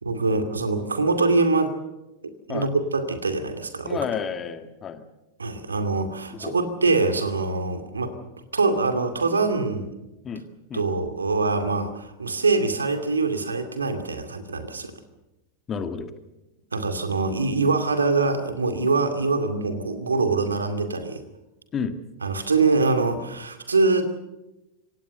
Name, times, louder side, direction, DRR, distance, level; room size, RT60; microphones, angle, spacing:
voice 1, 0.0-1.7 2.5-4.0 5.4-8.1 8.5-9.9 10.7-14.9 16.7-21.2 22.2-24.0, right 3 dB, 75° right, 8 dB, 2.5 m, -24 dB
voice 2, 3.9-5.0 6.4-6.5 10.2-10.4 10.7-10.8 15.7-16.1 21.7-22.0, left 6 dB, 25° left, 9 dB, 1.9 m, -30 dB
26.0 x 17.5 x 6.7 m, 0.95 s
figure-of-eight pair, 90°, 0 cm